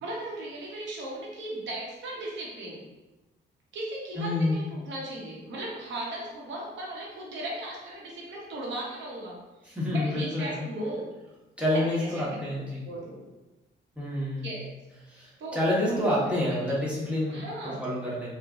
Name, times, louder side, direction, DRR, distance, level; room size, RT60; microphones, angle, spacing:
voice 1, 0.0-2.8 3.7-11.1 11.7-12.4 12.8-13.2 14.4-14.6 15.4-15.6 15.8-16.0 17.3-17.8, right 1 dB, 70° right, -3 dB, 0.8 m, -37 dB
voice 2, 4.2-4.7 9.6-10.7 11.6-12.8 14.0-14.5 15.1-17.5 17.8-18.3, left 1 dB, 5° right, -8 dB, 1.0 m, -28 dB
3.1 x 2.1 x 2.4 m, 1.1 s
cardioid pair, 90°, 20 cm